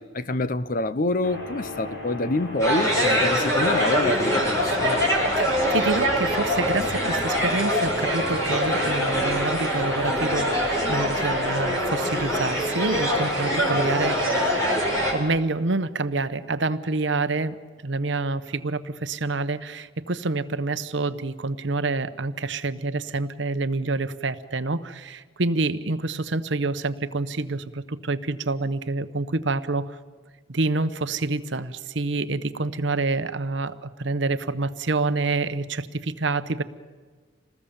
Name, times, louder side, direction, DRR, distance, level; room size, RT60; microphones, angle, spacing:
voice 1, 0.0-5.1, left 2 dB, 45° left, 0.7 m, -27 dB
sound 1, 1.2-11.5, left 1 dB, 65° left, 4.7 m, -36 dB
sound 2, 2.6-15.1, equal, 15° left, 5.2 m, -24 dB
voice 2, 5.4-14.4 15.1-17.6 17.8-30.0 30.5-36.6, right 3 dB, 65° right, 1.0 m, -27 dB
27.5 x 19.5 x 7.2 m
head